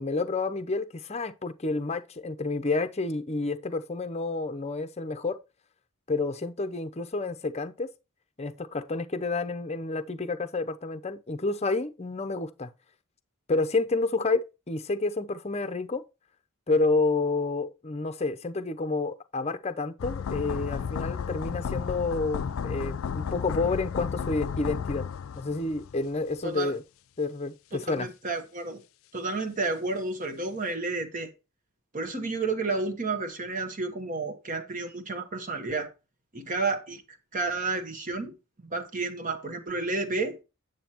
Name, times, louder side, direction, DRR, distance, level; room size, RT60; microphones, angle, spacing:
voice 1, 0.0-5.4 6.1-7.9 8.4-12.7 13.5-16.0 16.7-25.1 25.3-26.8 27.2-28.1, left 3 dB, 30° left, 0.7 m, -29 dB
sound 1, 20.0-26.1 26.3-26.4, left 6 dB, 65° left, 0.4 m, -33 dB
voice 2, 26.4-26.7 27.7-28.8 29.1-31.3 31.9-35.9 36.3-38.3 38.6-40.4, right 3 dB, 40° right, 1.3 m, -31 dB
9.2 x 7.9 x 3.0 m
head